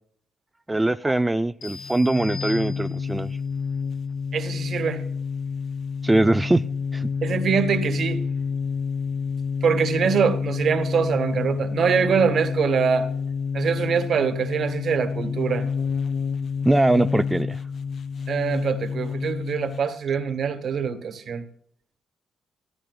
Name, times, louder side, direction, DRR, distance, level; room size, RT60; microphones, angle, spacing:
voice 1, 0.7-3.4 6.0-6.6 6.9-7.1 16.6-17.6, right 2 dB, 10° right, 0.3 m, -21 dB
sound 1, 1.6-3.3, left 4 dB, 80° left, 3.3 m, -39 dB
sound 2, 1.6-19.9, left 5 dB, 55° left, 0.4 m, -29 dB
voice 2, 4.3-5.0 7.2-8.2 9.6-13.1 13.5-15.7 18.3-21.4, right 6 dB, 60° right, 1.3 m, -24 dB
14.5 x 13.5 x 2.3 m
cardioid pair, 90°, 0 cm